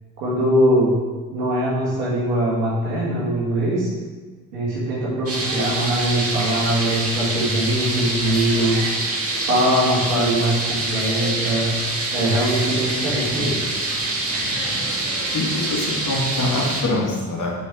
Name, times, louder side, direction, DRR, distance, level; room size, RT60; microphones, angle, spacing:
voice 1, 0.2-0.9 1.3-3.9 4.5-8.7 9.5-11.7 12.1-13.6, right 1 dB, 90° right, -7 dB, 2.0 m, -21 dB
sound 1, 5.3-16.8, right 2 dB, 30° right, 2.0 m, -25 dB
voice 2, 14.4-14.8 15.3-17.5, left 2 dB, 40° left, -3 dB, 2.2 m, -25 dB
6.9 x 4.6 x 4.6 m, 1.4 s
hypercardioid pair, 50°, 46 cm